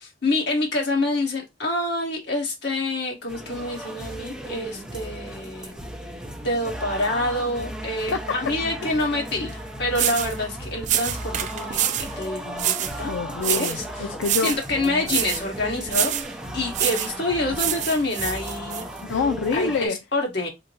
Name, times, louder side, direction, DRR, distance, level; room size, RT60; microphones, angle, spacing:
voice 1, 0.0-5.7 6.4-9.5 9.8-13.1 13.5-13.8 14.4-16.1 16.5-18.8 19.5-20.5, left 2 dB, 60° left, 1.6 m, -27 dB
sound 1, 3.3-19.9, equal, 5° right, 0.7 m, -36 dB
sound 2, 9.5-9.6 9.9-10.4 10.8-12.1 12.6-13.0 13.4-13.8 14.2-14.7 15.0-15.5 15.9-16.3 16.7-17.2 17.5-18.8, right 11 dB, 40° right, 0.3 m, -26 dB
voice 2, 13.1-14.5 19.0-20.0, left 5 dB, 85° left, 0.4 m, -26 dB
3.7 x 2.2 x 4.4 m
head